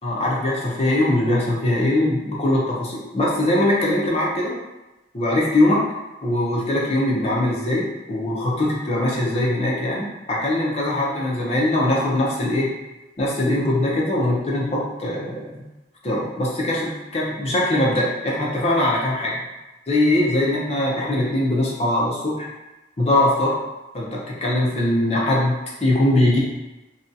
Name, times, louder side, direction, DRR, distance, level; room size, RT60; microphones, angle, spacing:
voice 1, 0.0-4.5 5.1-5.8 6.2-12.7 13.2-15.5 16.0-19.4 19.9-22.5 23.0-23.5 23.9-26.4, left 1 dB, 35° left, -4 dB, 0.6 m, -21 dB
2.6 x 2.2 x 2.6 m, 1.1 s
head